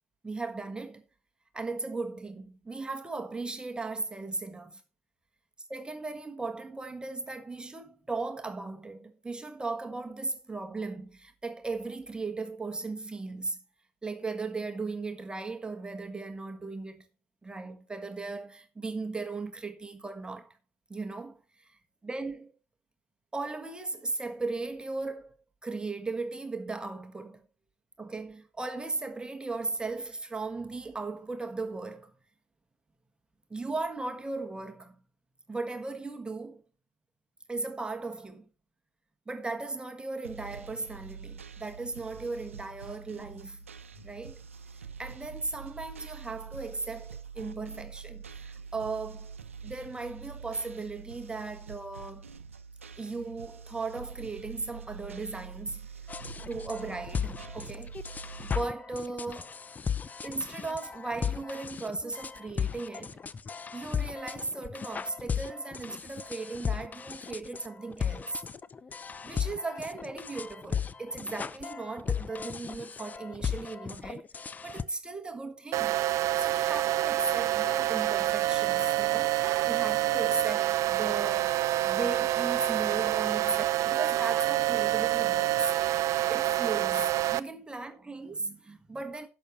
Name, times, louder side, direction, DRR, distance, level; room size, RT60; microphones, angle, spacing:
voice 1, 0.2-1.0 1.5-4.8 5.7-13.6 14.0-17.0 17.4-20.6 20.9-22.5 23.3-25.4 25.6-27.4 28.0-32.1 33.5-35.0 35.5-36.6 37.5-38.5 39.3-43.6 44.0-44.4 44.7-49.3 49.6-52.3 53.0-55.9 56.5-59.6 60.2-63.2 63.7-68.4 69.2-75.9 76.4-79.4 79.7-81.5 81.9-85.7 86.3-89.3, right 3 dB, 15° right, 1.4 m, -37 dB
sound 1, 40.2-58.5, right 6 dB, 85° right, 0.8 m, -45 dB
sound 2, 56.1-74.8, left 7 dB, 25° left, 0.5 m, -36 dB
sound 3, 75.7-87.4, right 15 dB, 50° right, 0.6 m, -27 dB
11.5 x 7.2 x 4.1 m
hypercardioid pair, 70°, 7 cm